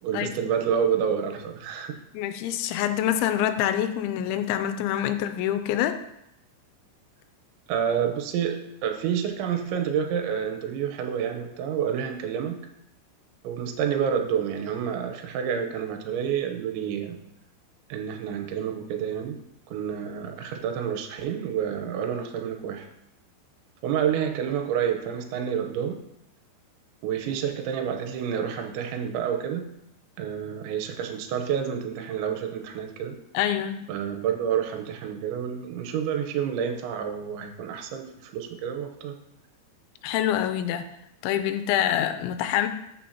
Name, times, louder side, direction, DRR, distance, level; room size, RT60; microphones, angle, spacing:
voice 1, 0.0-2.0 7.7-12.6 13.4-17.2 17.9-19.4 19.7-22.9 23.8-26.0 27.0-29.6 30.2-33.2 33.9-39.1, right 8 dB, 85° right, 5 dB, 3.2 m, -29 dB
voice 2, 2.1-6.0 33.3-33.9 40.0-40.8 41.2-42.7, left 11 dB, 90° left, 8 dB, 3.0 m, -26 dB
14.0 x 6.9 x 2.9 m, 0.78 s
omnidirectional pair, 5.3 m